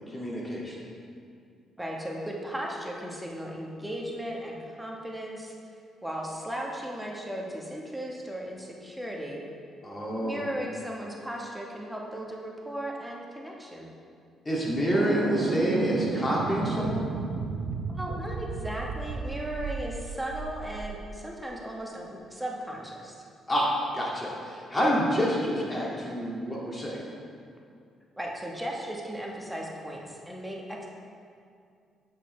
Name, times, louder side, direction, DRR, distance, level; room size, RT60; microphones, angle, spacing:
voice 1, 0.1-0.8 9.8-10.4 14.5-17.1 23.5-27.0, equal, 20° left, -5 dB, 2.1 m, -28 dB
voice 2, 1.8-5.5 6.0-9.4 10.2-13.9 17.9-23.2 28.2-30.9, right 1 dB, 5° right, -2 dB, 1.2 m, -36 dB
sound 1, 14.9-21.0, right 5 dB, 80° right, 0.5 m, -32 dB
8.2 x 7.6 x 3.2 m, 2.3 s
cardioid pair, 90°, 0 cm